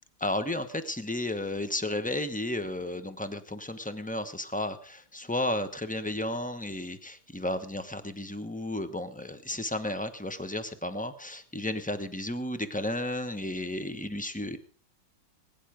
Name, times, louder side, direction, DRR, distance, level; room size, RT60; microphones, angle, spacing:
voice 1, 0.2-14.6, left 1 dB, 10° left, 10 dB, 0.6 m, -33 dB
21.0 x 10.0 x 5.1 m, 0.42 s
omnidirectional pair, 2.2 m